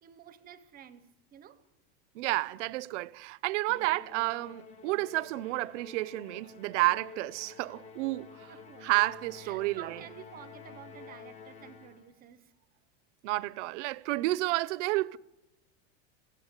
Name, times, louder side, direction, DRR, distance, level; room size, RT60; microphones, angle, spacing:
voice 1, 0.0-1.6 8.5-8.9 9.4-12.5, right 10 dB, 25° right, 0.8 m, -50 dB
voice 2, 2.1-8.5 8.8-10.0 13.2-15.2, right 19 dB, 65° right, 0.8 m, -31 dB
Musical instrument, 3.7-12.2, left 5 dB, 20° left, 0.9 m, -50 dB
24.5 x 16.5 x 8.2 m
supercardioid pair, 170°, 38 cm